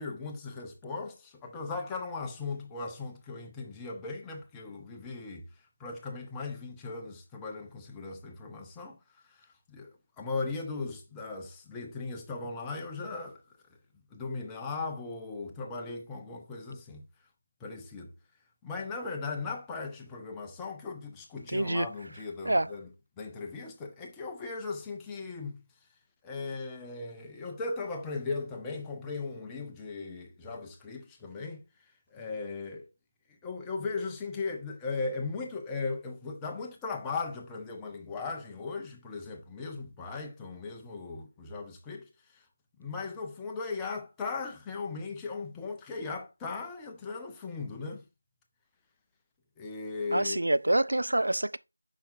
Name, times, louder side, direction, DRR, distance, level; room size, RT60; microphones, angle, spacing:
voice 1, 0.0-5.5 5.8-13.4 14.1-17.0 17.6-18.1 18.6-22.9 23.2-25.6 26.2-31.6 32.1-32.9 33.4-42.5 42.8-48.0 49.6-50.4, left 4 dB, 5° left, 0.5 m, -38 dB
voice 2, 21.5-21.9 22.4-22.7 50.1-51.6, right 1 dB, 60° right, 0.3 m, -26 dB
6.9 x 5.7 x 2.5 m
figure-of-eight pair, 170°, 0 cm